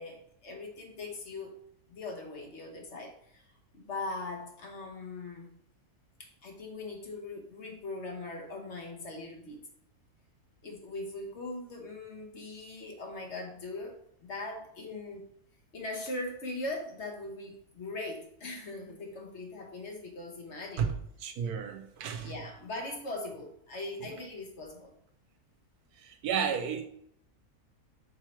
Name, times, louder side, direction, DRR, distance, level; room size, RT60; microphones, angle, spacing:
voice 1, 0.0-1.5 1.9-3.4 3.7-5.5 6.2-9.6 10.6-15.3 15.7-20.9 22.2-24.9, left 2 dB, 50° left, 2 dB, 1.4 m, -40 dB
voice 2, 21.2-22.3 26.0-26.9, right 7 dB, 85° right, 6 dB, 1.3 m, -32 dB
5.2 x 4.7 x 4.5 m, 0.69 s
omnidirectional pair, 1.6 m